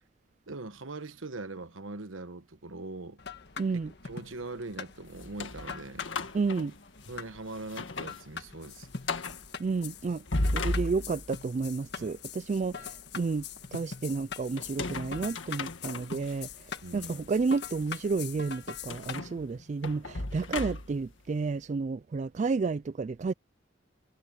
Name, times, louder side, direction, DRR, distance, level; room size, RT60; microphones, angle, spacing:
voice 1, 0.5-3.2 4.0-6.1 7.1-8.9 10.5-10.8 12.0-12.2 16.8-17.2 20.5-20.6, right 2 dB, 85° right, 1.2 m, -41 dB
sound 1, 3.2-19.2, left 6 dB, 55° left, 1.6 m, -43 dB
voice 2, 3.6-3.9 6.3-6.7 9.6-10.2 10.5-13.5 13.7-16.5 16.9-23.3, right 4 dB, 35° right, 0.3 m, -31 dB
sound 2, 5.2-7.2 7.6-8.2 8.5-8.6 9.0-9.4 10.1-11.4 14.6-16.3 17.0-17.1 18.9-21.1, left 2 dB, 75° left, 1.7 m, -35 dB
head